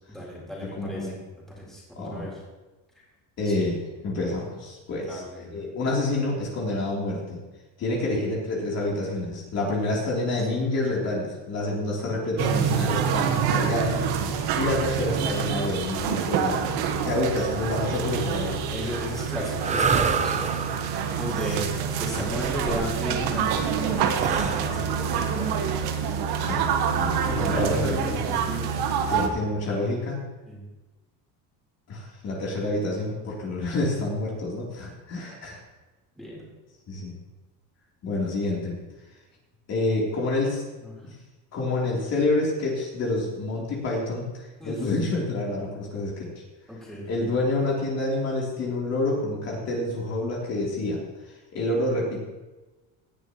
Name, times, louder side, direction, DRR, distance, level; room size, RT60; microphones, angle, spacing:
voice 1, 0.1-1.2 1.5-2.4 3.4-3.5 4.2-4.4 4.9-5.5 18.7-20.6 21.2-25.9 27.2-28.8 30.5-30.6 36.2-36.4 40.8-40.9 44.6-44.8 46.7-47.1, equal, ahead, -6 dB, 3.8 m, -34 dB
voice 2, 0.8-1.1 1.9-2.3 3.4-5.2 5.5-7.4 7.8-16.8 17.0-18.6 22.1-22.4 26.4-26.7 27.0-28.2 29.1-30.2 31.9-35.6 36.9-37.1 38.0-38.8 39.7-40.6 41.0-41.2 41.5-46.3 47.1-51.0 51.5-52.2, left 2 dB, 45° left, -4 dB, 3.4 m, -28 dB
sound 1, 12.4-29.3, right 7 dB, 80° right, 1.5 m, -27 dB
sound 2, 19.5-27.6, right 5 dB, 20° right, 0.5 m, -29 dB
17.5 x 10.5 x 3.1 m, 1.2 s
cardioid pair, 150°, 37 cm